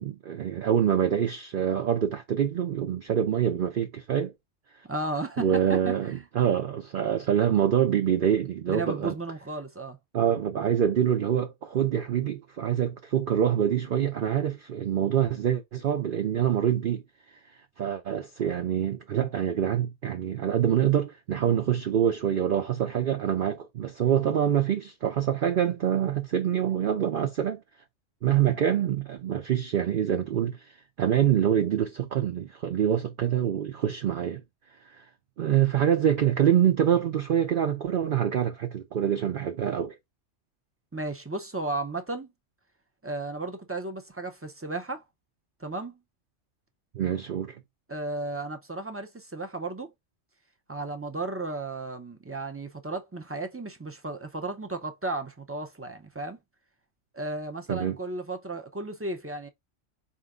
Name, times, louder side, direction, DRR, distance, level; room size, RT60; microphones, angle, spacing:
voice 1, 0.0-4.3 5.4-9.1 10.1-17.0 17.8-27.6 28.2-30.6 31.0-34.4 34.9-35.0 35.4-40.0 46.9-47.6 57.7-58.0, right 9 dB, 55° right, 0.6 m, -25 dB
voice 2, 4.8-6.2 8.7-10.0 40.9-42.3 43.0-45.0 45.6-46.0 47.9-49.9 50.7-56.4 57.1-59.5, right 2 dB, 20° right, 0.3 m, -34 dB
4.4 x 2.6 x 3.6 m
omnidirectional pair, 1.3 m